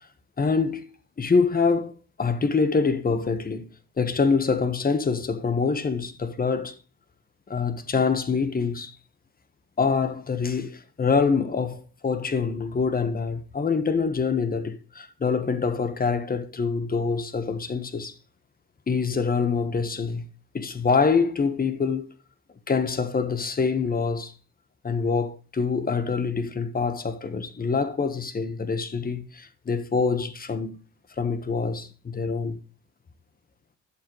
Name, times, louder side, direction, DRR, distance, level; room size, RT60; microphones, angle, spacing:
voice 1, 0.4-0.8 1.2-1.9 2.2-3.7 4.0-6.8 7.5-8.9 9.8-18.1 18.9-20.2 20.5-22.1 22.7-24.3 24.8-30.8 31.2-32.6, left 5 dB, 30° left, 1.4 m, -25 dB
11.5 x 7.4 x 3.2 m
cardioid pair, 90°, 30 cm